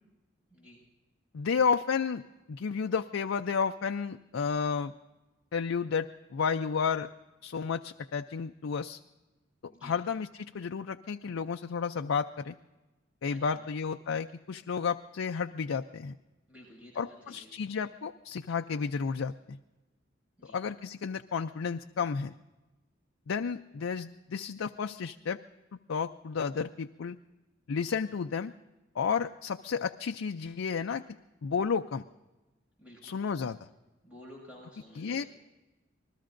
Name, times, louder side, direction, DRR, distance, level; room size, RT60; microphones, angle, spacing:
voice 1, 1.3-4.9 5.5-7.1 7.4-9.0 9.6-12.6 13.2-16.2 17.0-19.6 20.5-22.3 23.3-25.4 25.9-27.2 27.7-28.5 29.0-31.0 31.4-32.0 33.0-33.7 35.0-35.2, left 6 dB, 85° left, 6 dB, 0.4 m, -32 dB
voice 2, 13.3-13.6 16.5-17.5 20.4-20.6 32.8-33.2 34.0-35.3, equal, 5° right, -3 dB, 6.1 m, -52 dB
27.5 x 20.5 x 2.6 m, 1.1 s
head